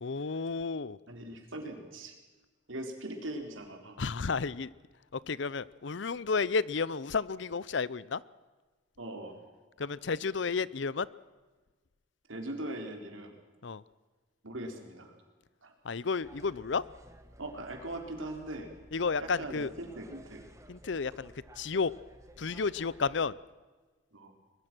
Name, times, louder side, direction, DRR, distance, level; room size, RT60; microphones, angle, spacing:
voice 1, 0.0-1.0 4.0-4.7 5.1-8.2 9.8-11.1 13.6-13.8 15.8-16.8 18.9-19.7 20.7-21.9 22.4-23.4, left 4 dB, 65° left, 20 dB, 0.6 m, -32 dB
voice 2, 1.1-2.1 2.7-4.0 9.0-9.4 12.3-13.4 14.4-15.1 15.6-15.7 17.4-18.7 19.2-20.4 24.1-24.3, right 1 dB, 85° right, 3 dB, 4.1 m, -40 dB
sound 1, 16.2-23.3, right 1 dB, 15° right, 1.5 m, -54 dB
22.5 x 21.5 x 6.2 m, 1.3 s
head